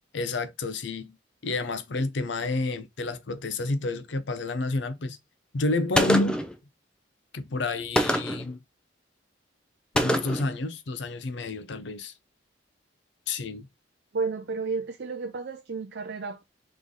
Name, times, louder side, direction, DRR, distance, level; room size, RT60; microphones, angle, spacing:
voice 1, 0.1-1.2 1.4-5.2 5.5-6.4 7.3-8.6 9.9-12.1 13.3-13.7, left 2 dB, 70° left, 0.6 m, -30 dB
Gunshot gunfire, 5.9-6.5 8.0-8.5 10.0-10.5, equal, 5° left, 0.5 m, -24 dB
voice 2, 14.1-16.4, right 4 dB, 60° right, 0.5 m, -32 dB
4.0 x 3.2 x 3.6 m
head